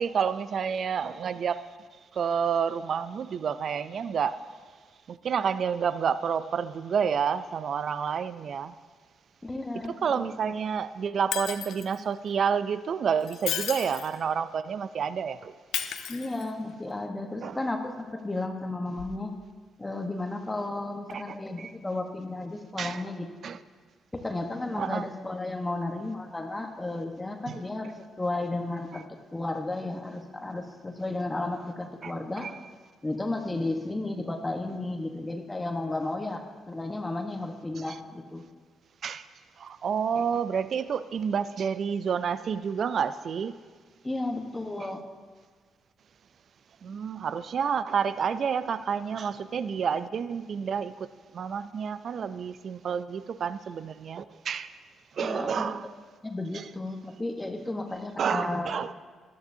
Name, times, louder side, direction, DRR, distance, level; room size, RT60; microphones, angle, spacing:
voice 1, 0.0-1.7 2.1-4.4 5.1-8.7 9.9-15.5 17.4-17.6 21.1-21.7 22.8-23.0 23.4-23.6 24.8-25.1 27.5-27.6 32.0-32.1 32.4-32.5 39.0-39.3 39.6-43.6 46.8-54.7 55.1-55.9 56.5-56.6 58.2-58.9, right 7 dB, 60° right, 14 dB, 0.3 m, -29 dB
voice 2, 9.4-10.3 16.1-19.3 19.8-23.3 24.1-29.0 29.3-32.5 33.0-38.4 44.0-45.0 55.2-55.7 56.2-58.7, left 2 dB, 20° left, 4 dB, 1.1 m, -33 dB
Shatter, 11.3-12.0 13.2-14.2 15.7-16.7 19.0-19.1, left 10 dB, 80° left, 0.6 m, -33 dB
13.5 x 11.5 x 2.7 m, 1.5 s
supercardioid pair, 60°, 0 cm